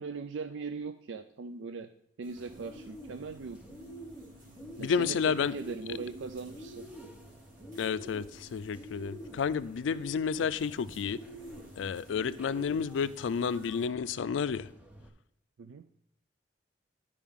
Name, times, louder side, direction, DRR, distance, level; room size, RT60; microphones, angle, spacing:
voice 1, 0.0-1.9 2.2-3.6 4.8-6.8 15.6-15.8, right 4 dB, 75° right, 9 dB, 0.4 m, -40 dB
sound 1, 2.2-13.9, right 1 dB, 50° right, 2.1 m, -55 dB
Bird, 2.4-15.1, equal, 10° right, 1.1 m, -48 dB
voice 2, 4.8-5.5 7.8-11.2 11.8-14.7, left 6 dB, 80° left, 15 dB, 0.4 m, -31 dB
11.5 x 4.9 x 3.6 m, 0.76 s
head